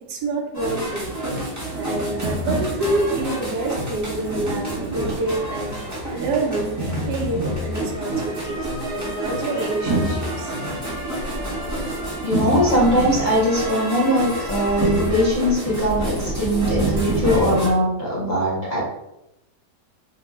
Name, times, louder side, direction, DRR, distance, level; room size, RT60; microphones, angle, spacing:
voice 1, 0.1-1.1 1.7-5.8 6.1-6.8 7.0-10.5, right 2 dB, 75° right, 1 dB, 1.2 m, -27 dB
sound 1, 0.5-17.7, right 1 dB, 20° right, 0.5 m, -27 dB
voice 2, 12.2-18.8, equal, 35° left, -7 dB, 0.8 m, -20 dB
2.9 x 2.3 x 3.6 m, 0.85 s
omnidirectional pair, 1.9 m